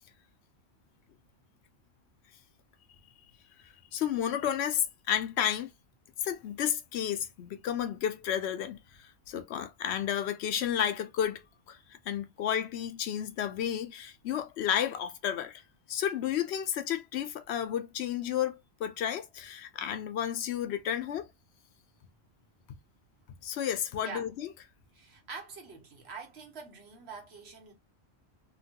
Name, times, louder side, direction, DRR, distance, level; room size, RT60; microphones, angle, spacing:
voice 1, 3.9-5.7 6.2-11.4 11.7-15.6 15.9-21.3 23.4-24.5, left 9 dB, 80° left, 0.9 m, -32 dB
voice 2, 24.0-24.3 24.9-27.7, right 5 dB, 75° right, 1.2 m, -45 dB
2.9 x 2.2 x 2.7 m
omnidirectional pair, 1.1 m